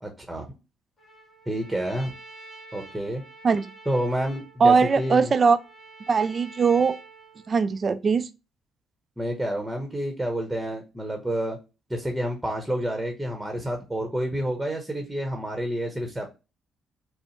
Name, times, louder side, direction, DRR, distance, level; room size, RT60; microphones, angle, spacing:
voice 1, 0.0-0.4 1.5-2.1 2.7-3.2 3.9-5.3 9.2-11.6 11.9-16.3, equal, 5° right, 0.9 m, -29 dB
Trumpet, 1.0-7.8, right 2 dB, 50° left, 1.8 m, -47 dB
voice 2, 4.6-5.6 6.1-7.0 7.5-8.3, right 5 dB, 40° right, 0.4 m, -20 dB
5.4 x 2.0 x 3.1 m
cardioid pair, 90°, 0 cm